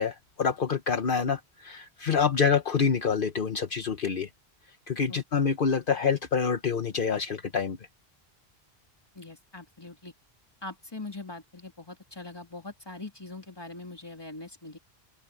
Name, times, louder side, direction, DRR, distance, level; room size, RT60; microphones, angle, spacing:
voice 1, 0.0-4.3 4.9-7.8, left 6 dB, 60° left, 1.1 m, -27 dB
voice 2, 9.1-10.1 10.6-14.8, left 2 dB, 25° left, 2.6 m, -42 dB
open air
omnidirectional pair, 1.1 m